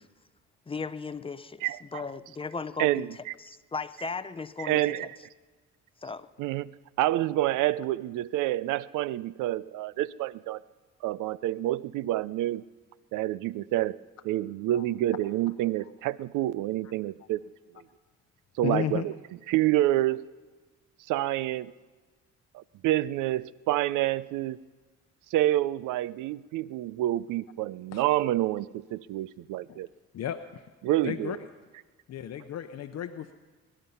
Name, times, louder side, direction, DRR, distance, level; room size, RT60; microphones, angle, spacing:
voice 1, 0.7-5.1 6.0-6.3, left 4 dB, 20° left, 14 dB, 0.6 m, -37 dB
voice 2, 1.6-2.0 2.8-3.1 4.6-5.1 6.4-6.7 7.0-10.6 11.0-12.6 13.1-14.0 14.2-17.4 17.7-17.8 18.6-19.1 19.5-20.2 21.1-21.7 22.5-24.6 25.3-29.9 30.8-31.4, right 15 dB, 90° right, 20 dB, 0.5 m, -28 dB
voice 3, 18.6-19.0 27.9-28.0 29.7-29.8 30.1-30.6 31.0-31.4 32.1-33.3, left 10 dB, 60° left, 7 dB, 0.7 m, -33 dB
23.0 x 11.0 x 5.6 m, 1.3 s
cardioid pair, 90°, 30 cm